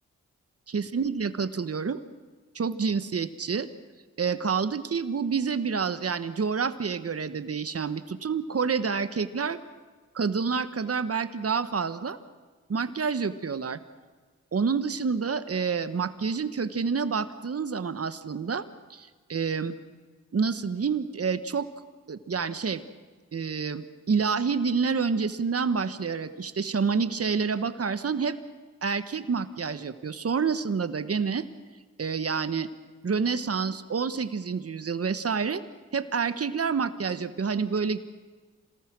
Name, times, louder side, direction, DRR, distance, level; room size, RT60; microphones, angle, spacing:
voice 1, 0.7-2.0 2.5-3.7 4.2-9.6 10.1-12.2 12.7-13.8 14.5-19.7 20.3-21.7 22.1-22.8 23.3-28.4 28.8-31.4 32.0-32.7 33.0-35.6 35.9-38.0, right 5 dB, 50° right, 12 dB, 1.4 m, -28 dB
27.0 x 18.5 x 6.2 m, 1.4 s
cardioid pair, 55°, 30 cm